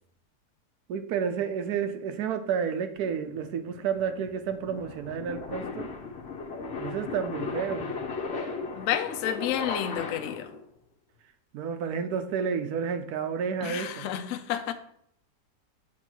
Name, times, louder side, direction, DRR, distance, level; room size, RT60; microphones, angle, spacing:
voice 1, 0.9-5.9 6.7-8.0 11.5-14.1, right 7 dB, 70° right, 1.1 m, -30 dB
sound 1, 3.0-10.6, left 4 dB, 45° left, 1.0 m, -36 dB
voice 2, 8.7-10.5 13.6-14.7, left 10 dB, 65° left, 0.8 m, -30 dB
7.4 x 3.0 x 6.1 m
omnidirectional pair, 1.9 m